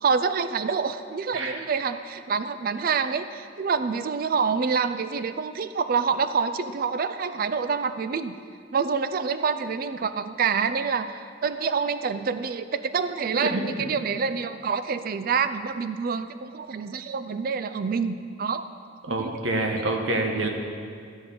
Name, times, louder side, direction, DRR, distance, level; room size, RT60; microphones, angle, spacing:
voice 1, 0.0-8.4 8.7-18.7 19.1-19.4 19.8-19.9, right 5 dB, 50° right, 12 dB, 0.4 m, -27 dB
voice 2, 19.0-20.5, right 2 dB, 85° right, 3 dB, 1.3 m, -27 dB
13.0 x 7.1 x 5.3 m, 2.2 s
head